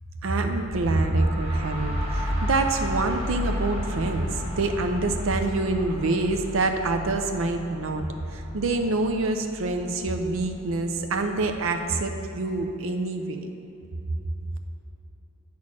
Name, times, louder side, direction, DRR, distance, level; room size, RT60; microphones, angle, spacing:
voice 1, 0.2-8.0 8.3-13.5, right 2 dB, 70° right, 6 dB, 0.5 m, -26 dB
sound 1, 0.6-12.3, left 1 dB, 30° right, 1.5 m, -34 dB
8.6 x 4.3 x 6.1 m, 2.9 s
head